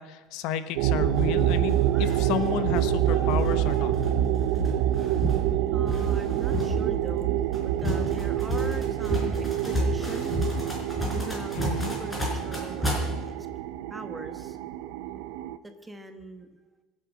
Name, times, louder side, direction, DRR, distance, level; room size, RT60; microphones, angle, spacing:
voice 1, 0.0-3.9 11.5-11.9, left 9 dB, 60° left, 11 dB, 1.0 m, -31 dB
sound 1, 0.8-15.6, right 12 dB, 80° right, 0.8 m, -27 dB
sound 2, 1.1-13.0, equal, 10° left, 4.7 m, -32 dB
voice 2, 5.7-10.3 11.0-13.4 13.9-14.6 15.6-16.5, right 1 dB, 10° right, 8 dB, 1.2 m, -41 dB
25.0 x 8.9 x 6.3 m, 1.3 s
cardioid pair, 160°, 0 cm